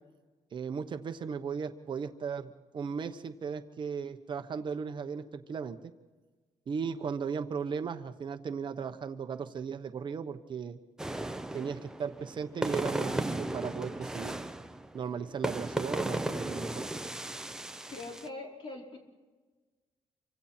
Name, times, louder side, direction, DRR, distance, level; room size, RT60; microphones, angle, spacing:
voice 1, 0.5-5.8 6.7-10.8 11.5-14.4 14.9-16.9, right 6 dB, 40° right, 7 dB, 1.0 m, -36 dB
sound 1, 11.0-18.3, right 1 dB, 5° right, 0.7 m, -35 dB
voice 2, 17.9-19.0, left 2 dB, 45° left, 0 dB, 5.0 m, -42 dB
28.0 x 25.0 x 4.4 m, 1.3 s
cardioid pair, 165°, 12 cm